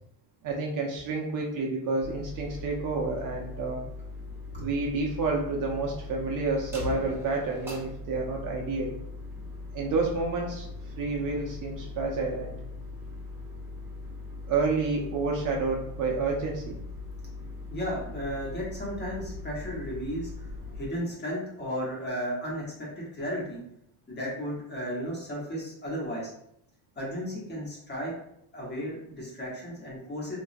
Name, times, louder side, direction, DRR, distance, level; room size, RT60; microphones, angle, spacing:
voice 1, 0.4-3.8 4.6-9.0 9.7-12.6 14.5-16.7, right 3 dB, 45° right, -1 dB, 0.5 m, -29 dB
sound 1, 2.0-20.9, left 3 dB, 5° right, 0.6 m, -40 dB
voice 2, 17.7-20.5 20.7-23.6 24.1-26.3 27.0-28.1 28.5-30.4, equal, 25° left, -4 dB, 1.0 m, -34 dB
3.0 x 2.3 x 2.5 m, 0.75 s
cardioid pair, 135°, 45 cm